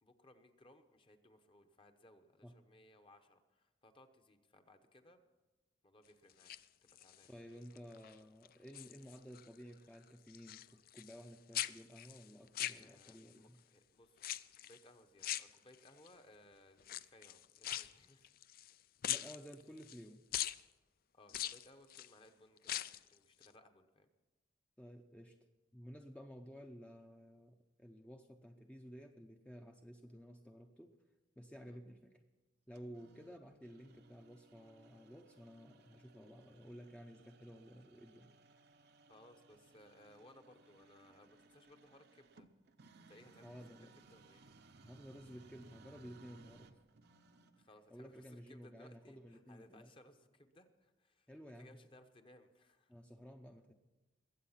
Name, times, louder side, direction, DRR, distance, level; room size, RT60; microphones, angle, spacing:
voice 1, 0.0-5.3 5.8-6.5 6.8-7.3 7.5-7.8 12.7-13.2 13.7-14.2 14.6-18.3 21.1-24.1 31.6-31.8 39.1-42.5 43.1-43.8 44.1-44.4 47.6-51.3 51.6-52.9, left 1 dB, 30° left, 7 dB, 0.9 m, -63 dB
sound 1, 6.3-7.3 7.7-8.1 8.4-9.5 9.7-11.3 11.5-13.3 14.2-14.8 15.2-16.1 16.8-18.7 19.0-20.0 20.3-20.6 21.3-22.1 22.6-23.1 23.4-23.5, left 12 dB, 50° left, 0.4 m, -42 dB
voice 2, 7.3-13.6 19.1-20.2 24.8-25.4 25.7-30.9 31.4-32.2 32.7-38.3 43.4-43.9 44.8-46.8 47.9-49.9 51.3-51.8 52.9-53.7, equal, 5° left, 3 dB, 0.6 m, -54 dB
sound 2, 32.7-47.7, right 3 dB, 55° right, 0.7 m, -64 dB
21.0 x 8.2 x 5.7 m, 1.1 s
head